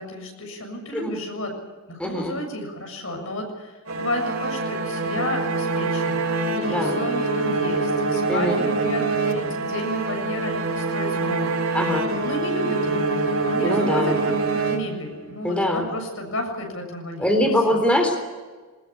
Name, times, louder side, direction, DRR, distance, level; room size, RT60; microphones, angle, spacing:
voice 1, 0.0-1.5 1.9-11.8 12.2-14.1 14.5-17.8, left 1 dB, 70° left, 3 dB, 7.2 m, -32 dB
voice 2, 2.0-2.3 6.7-7.0 8.3-8.6 11.7-12.1 13.6-14.2 15.4-15.9 17.2-18.2, left 1 dB, 5° left, 3 dB, 3.6 m, -22 dB
sound 1, 3.9-15.3, right 3 dB, 85° right, 5.8 m, -25 dB
22.5 x 20.5 x 8.6 m, 1.4 s
head